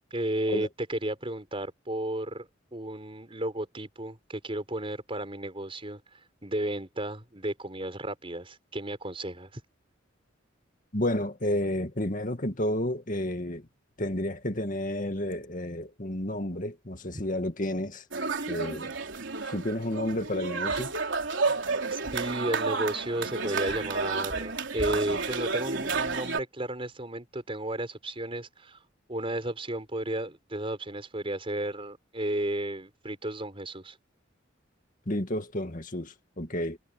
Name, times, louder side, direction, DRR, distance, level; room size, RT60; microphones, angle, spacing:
voice 1, 0.1-9.6 21.9-28.8 29.1-34.0, right 1 dB, 30° right, 5.0 m, -33 dB
voice 2, 10.9-13.6 14.0-18.0 18.5-18.9 19.5-20.9 35.1-36.8, left 1 dB, 40° left, 2.2 m, -31 dB
sound 1, 18.1-26.4, right 4 dB, 70° right, 3.8 m, -31 dB
head